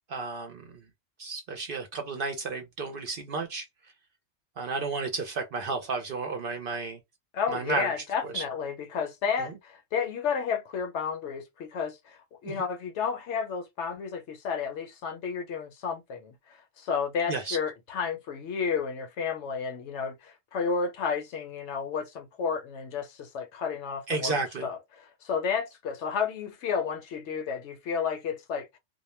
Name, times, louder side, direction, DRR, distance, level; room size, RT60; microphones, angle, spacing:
voice 1, 0.1-0.6 1.2-3.7 4.6-7.0 7.5-7.9 8.3-8.4 12.4-12.6 17.3-17.6 24.1-24.7, right 4 dB, 60° right, 0.7 m, -32 dB
voice 2, 7.3-16.4 16.8-28.8, left 6 dB, 70° left, 0.9 m, -32 dB
2.2 x 2.1 x 3.0 m
omnidirectional pair, 1.3 m